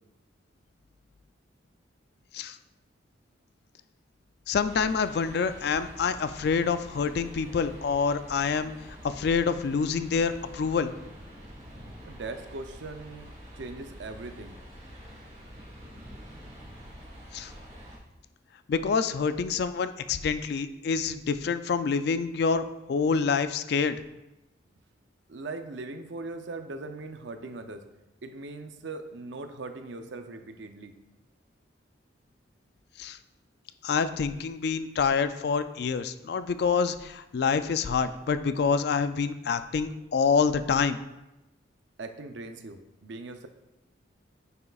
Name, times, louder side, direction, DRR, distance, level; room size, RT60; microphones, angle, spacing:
voice 1, 4.5-8.7 9.0-10.9 17.3-17.5 18.7-24.0 33.0-33.2 33.8-41.0, left 5 dB, 55° left, 11 dB, 0.3 m, -27 dB
sound 1, 4.6-18.0, equal, 35° right, 1.5 m, -47 dB
voice 2, 12.0-13.3 13.6-14.6 25.3-27.8 28.2-30.9 42.0-43.5, right 3 dB, 70° right, 7 dB, 0.6 m, -40 dB
9.3 x 5.6 x 2.4 m, 0.98 s
head